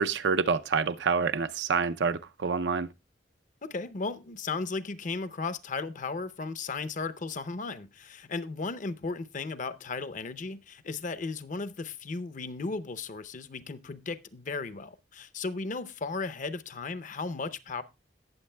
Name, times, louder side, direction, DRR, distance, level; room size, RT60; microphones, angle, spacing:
voice 1, 0.0-2.9, right 5 dB, 80° right, 0.5 m, -27 dB
voice 2, 3.6-17.8, left 4 dB, 45° left, 0.6 m, -35 dB
17.5 x 7.2 x 2.2 m
head